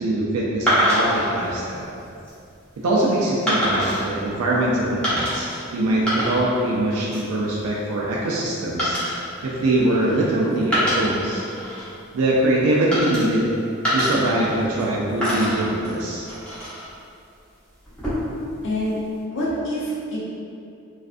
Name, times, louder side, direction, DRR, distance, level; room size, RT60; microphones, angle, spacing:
voice 1, 0.0-2.0 2.8-9.0 9.4-11.4 12.1-13.5 13.9-16.3, right 1 dB, 85° right, -4 dB, 0.4 m, -22 dB
sound 1, 0.7-1.3 2.0-2.3 3.5-4.1 5.0-5.6 5.9-6.6 6.9-7.3 8.8-10.2 10.6-11.9 12.9-13.5 13.8-14.9 15.2-16.9 17.8-18.4, equal, 5° left, 0.6 m, -25 dB
voice 2, 18.6-19.0 19.3-20.2, equal, 55° left, -6 dB, 0.6 m, -26 dB
2.5 x 2.2 x 2.4 m, 2.6 s
head